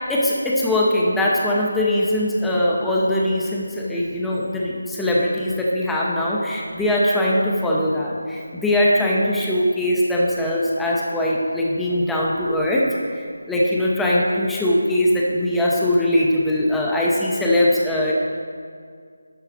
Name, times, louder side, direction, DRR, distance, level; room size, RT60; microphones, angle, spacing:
voice 1, 0.1-18.1, left 1 dB, 5° left, -5 dB, 1.0 m, -21 dB
12.0 x 4.7 x 6.4 m, 2.1 s
figure-of-eight pair, 165°, 0 cm